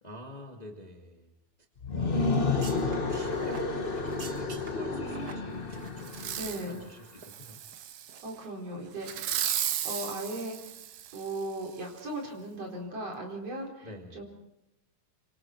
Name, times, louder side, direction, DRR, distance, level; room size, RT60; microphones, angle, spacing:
voice 1, 0.0-1.3 2.0-7.6 13.8-14.2, equal, 15° left, 1 dB, 1.8 m, -46 dB
sound 1, 1.8-6.8, left 3 dB, 40° left, 0.7 m, -31 dB
sound 2, 2.2-6.9 7.1-7.3 7.7-8.5 8.8-9.0 9.4-9.6 9.8-9.9, right 4 dB, 40° right, 1.7 m, -49 dB
Fireworks, 6.1-6.7 7.2-8.3 9.0-11.4 12.0-12.1, right 11 dB, 85° right, 2.6 m, -35 dB
voice 2, 6.4-6.9 8.2-9.4 9.8-10.7 11.1-14.2, right 1 dB, 55° right, 0 dB, 5.2 m, -38 dB
27.5 x 25.5 x 4.5 m, 0.89 s
omnidirectional pair, 3.4 m